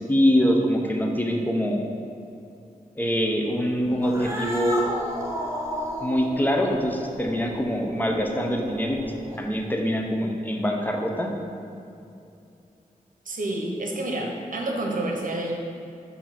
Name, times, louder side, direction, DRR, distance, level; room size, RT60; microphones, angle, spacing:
voice 1, 0.0-1.8 3.0-4.9 6.0-9.0 9.3-11.3, equal, 10° left, 1 dB, 0.7 m, -24 dB
Cat, 3.9-9.6, equal, 20° right, 0.8 m, -33 dB
voice 2, 13.2-15.5, right 1 dB, 65° right, 1 dB, 0.9 m, -29 dB
6.9 x 2.7 x 5.7 m, 2.6 s
wide cardioid pair, 90°, 15 cm